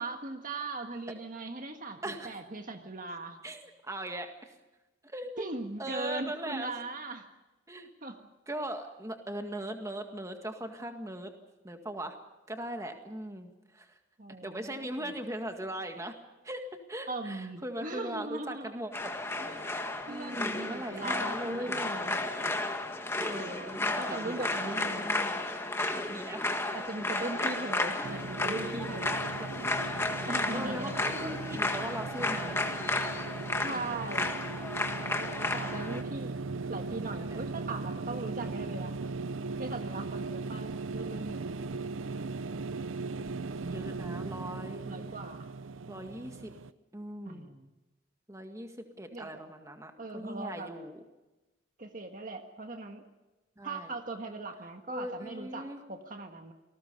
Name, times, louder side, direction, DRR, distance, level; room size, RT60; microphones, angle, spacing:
voice 1, 0.0-3.4 5.4-7.3 8.0-8.2 14.2-15.1 17.1-18.7 20.1-22.2 23.2-25.1 25.9-26.2 26.7-29.2 30.3-31.0 33.6-34.4 35.2-36.4 36.7-38.9 39.6-41.5 44.8-45.5 47.3-47.7 49.1-49.4 50.0-50.7 51.8-53.0 53.6-56.5, right 2 dB, 45° right, 5 dB, 1.6 m, -39 dB
voice 2, 2.0-2.4 3.4-4.3 5.1-5.4 5.8-6.7 7.7-7.9 8.5-11.3 11.6-12.2 12.5-13.9 14.4-16.1 16.4-19.1 19.4-19.7 20.1-21.8 23.5-25.4 26.1-26.4 27.2-27.5 28.0-28.2 29.4-29.5 30.5-32.8 34.2-34.4 37.1-37.4 43.2-45.1 45.9-46.5 46.9-47.5 48.3-51.0 53.6-53.9 54.9-55.8, right 1 dB, 15° right, 5 dB, 1.9 m, -40 dB
sound 1, 18.9-36.0, left 2 dB, 15° left, 1.7 m, -33 dB
sound 2, 28.0-46.7, right 3 dB, 85° right, 0.7 m, -38 dB
28.5 x 19.5 x 5.4 m, 1.1 s
head